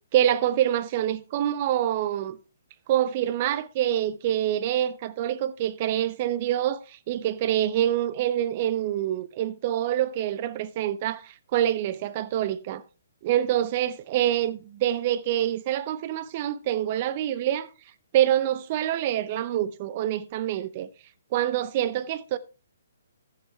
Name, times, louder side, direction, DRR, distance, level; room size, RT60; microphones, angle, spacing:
voice 1, 0.1-2.4 2.9-12.8 13.2-17.7 18.1-20.9 21.3-22.4, right 11 dB, 40° right, 0.7 m, -26 dB
13.5 x 7.3 x 3.2 m
figure-of-eight pair, 130°, 0 cm